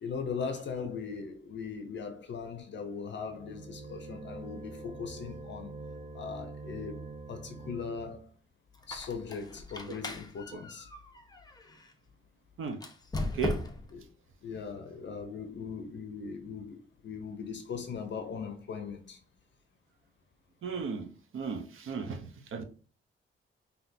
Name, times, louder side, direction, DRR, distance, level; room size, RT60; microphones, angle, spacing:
voice 1, 0.0-5.7 6.1-8.3 8.9-10.9 13.9-14.0 14.4-19.2, left 5 dB, 60° left, 0.6 m, -39 dB
sound 1, 3.2-8.3, right 3 dB, 25° right, 0.8 m, -45 dB
Squeak, 8.7-11.9 12.7-14.0, left 2 dB, 20° left, 0.7 m, -38 dB
voice 2, 13.2-13.6 20.6-22.6, right 5 dB, 75° right, 0.8 m, -35 dB
5.8 x 2.8 x 2.6 m
wide cardioid pair, 115°, 21 cm